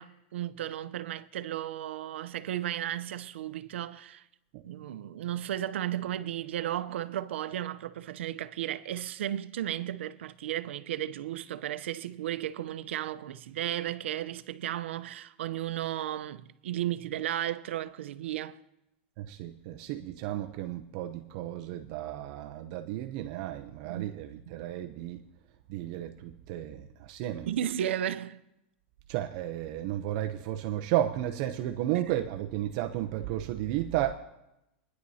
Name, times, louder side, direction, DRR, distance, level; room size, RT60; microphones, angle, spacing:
voice 1, 0.0-4.2 4.6-18.6 23.8-24.1 24.3-24.6 27.5-28.4, right 12 dB, 85° right, 0.7 m, -34 dB
voice 2, 19.2-25.3 25.7-27.5 29.1-34.1, right 13 dB, 40° right, 0.6 m, -33 dB
25.5 x 10.5 x 2.8 m
supercardioid pair, 165°, 6 cm